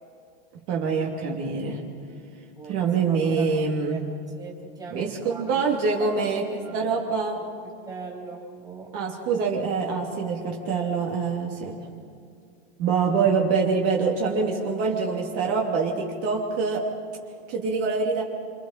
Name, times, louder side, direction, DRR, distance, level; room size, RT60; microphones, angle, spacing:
voice 1, 0.7-1.8 2.7-4.0 4.9-7.4 8.9-11.8 12.8-16.9 17.5-18.2, right 5 dB, 50° right, -1 dB, 2.9 m, -25 dB
voice 2, 2.5-4.0 4.4-5.6 6.0-7.0 7.4-7.5 7.9-8.9, right 4 dB, 10° right, -2 dB, 3.7 m, -41 dB
27.5 x 27.0 x 4.4 m, 2.4 s
supercardioid pair, 145°, 30 cm